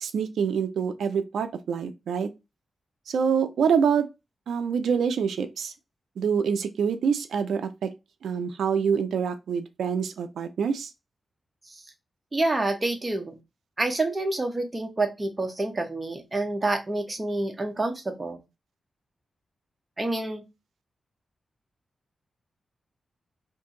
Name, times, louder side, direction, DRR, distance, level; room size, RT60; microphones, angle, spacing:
voice 1, 0.0-2.3 3.1-4.1 4.5-5.7 6.2-7.9 8.2-10.9, right 6 dB, 90° right, 0.4 m, -26 dB
voice 2, 12.3-13.3 13.8-18.4 20.0-20.4, right 2 dB, 25° right, 0.9 m, -28 dB
2.7 x 2.6 x 3.7 m
cardioid pair, 70°, 0 cm